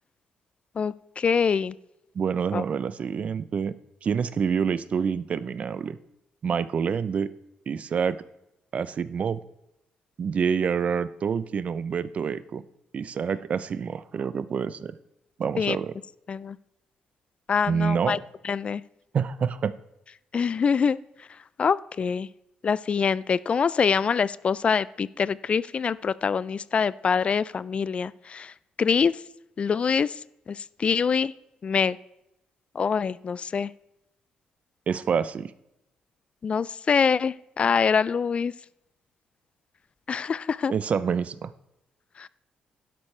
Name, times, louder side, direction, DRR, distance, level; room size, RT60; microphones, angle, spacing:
voice 1, 0.8-1.8 2.5-2.6 15.6-15.8 16.3-16.6 17.5-18.2 18.4-18.8 20.3-21.0 21.6-22.3 22.6-28.5 28.8-29.2 29.6-30.2 30.5-31.3 31.6-32.0 32.8-33.7 36.4-38.5 40.1-40.7 42.2-42.3, left 6 dB, 40° left, 19 dB, 0.3 m, -25 dB
voice 2, 2.1-3.7 4.0-6.0 6.4-7.3 7.7-8.2 8.7-9.4 10.2-12.6 12.9-15.0 15.4-15.9 17.7-18.2 19.1-19.7 34.9-35.5 40.7-41.5, right 6 dB, 50° right, 16 dB, 0.5 m, -27 dB
12.0 x 11.0 x 3.3 m, 0.86 s
cardioid pair, 80°, 3 cm